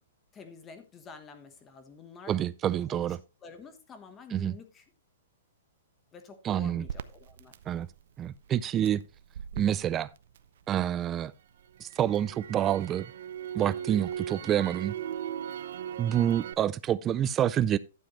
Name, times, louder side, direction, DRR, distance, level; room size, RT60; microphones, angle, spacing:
voice 1, 0.3-2.3 2.9-3.2 3.4-4.8 6.1-7.5 14.3-14.5, left 5 dB, 15° left, 1.1 m, -49 dB
voice 2, 2.3-3.2 4.3-4.5 6.4-6.8 7.7-7.9 8.2-9.0 9.6-10.1 10.7-11.3 11.8-13.1 13.5-14.9 16.0-17.8, right 10 dB, 15° right, 0.4 m, -27 dB
Crackle, 6.9-11.0 11.4-16.5, right 9 dB, 55° right, 0.6 m, -39 dB
12.0 x 7.5 x 3.1 m
hypercardioid pair, 170°, 0 cm